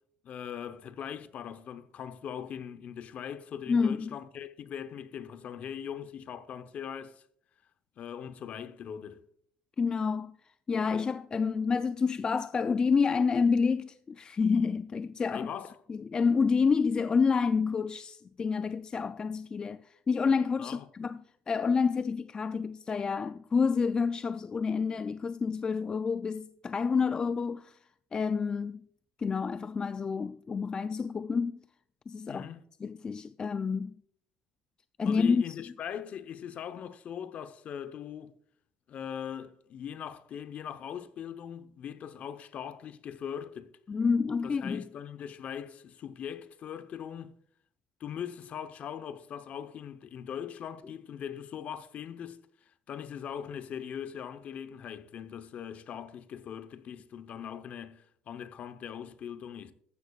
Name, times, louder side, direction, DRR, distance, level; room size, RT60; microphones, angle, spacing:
voice 1, 0.2-7.2 8.0-9.2 15.3-15.8 20.6-21.1 32.3-32.6 35.0-38.4 38.9-43.7 44.4-47.3 48.0-52.4 52.9-59.7, left 8 dB, 50° left, 0.8 m, -40 dB
voice 2, 3.7-4.1 9.8-10.4 10.7-15.5 15.9-21.2 21.5-27.8 28.1-28.8 29.2-31.6 32.1-32.5 32.8-33.9 35.0-35.5 43.9-44.8, left 5 dB, 25° left, 0.3 m, -28 dB
14.0 x 11.0 x 2.4 m
cardioid pair, 110°, 3 cm